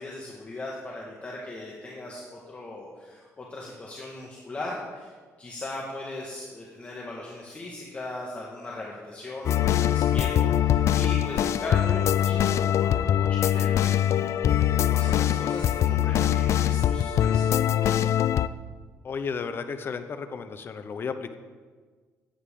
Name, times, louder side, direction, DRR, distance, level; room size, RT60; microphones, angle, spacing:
voice 1, 0.0-5.1 5.4-18.0, left 2 dB, 25° left, -3 dB, 1.7 m, -38 dB
sound 1, 9.5-18.5, left 11 dB, 60° left, 0.3 m, -23 dB
voice 2, 19.0-21.4, left 5 dB, 40° left, 9 dB, 0.8 m, -33 dB
15.0 x 9.5 x 3.8 m, 1.5 s
cardioid pair, 120°, 6 cm